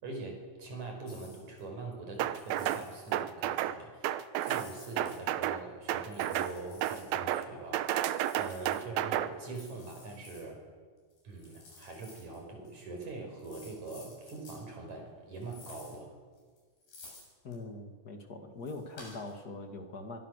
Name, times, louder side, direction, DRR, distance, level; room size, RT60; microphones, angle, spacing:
voice 1, 0.0-8.0 8.4-10.6 11.2-16.1, right 3 dB, 50° right, 2 dB, 6.4 m, -43 dB
sound 1, 1.1-1.6 2.1-3.2 4.3-5.2 6.0-7.1 7.8-8.8 9.4-10.4 11.1-12.4 12.6-12.8 13.4-14.6 15.4-16.0 16.4-17.5 18.6-19.3, left 3 dB, 75° left, 9.5 m, -54 dB
sound 2, 2.2-2.8 3.1-3.8 4.0-4.7 5.0-5.6 5.9-6.5 6.8-7.5 7.7-9.3, right 12 dB, 80° right, 2.7 m, -31 dB
voice 2, 17.4-20.2, left 2 dB, 30° left, 5 dB, 2.0 m, -42 dB
24.0 x 23.0 x 6.7 m, 1.5 s
omnidirectional pair, 4.3 m